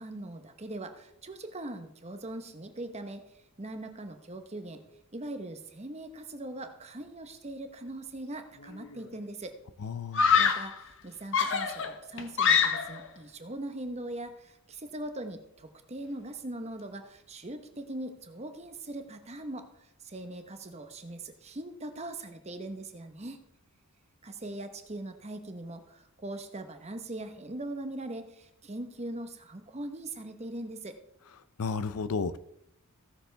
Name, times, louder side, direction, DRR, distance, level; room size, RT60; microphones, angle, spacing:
voice 1, 0.0-3.2 3.6-4.8 5.1-9.6 10.4-23.4 24.2-31.0, right 1 dB, 30° right, 7 dB, 0.9 m, -41 dB
Screaming, 8.6-9.1 10.1-10.8 11.3-13.1, left 6 dB, 60° left, 1.0 m, -25 dB
voice 2, 9.8-10.4 31.6-32.4, left 5 dB, 75° left, 14 dB, 0.5 m, -32 dB
16.0 x 7.0 x 3.4 m, 0.78 s
head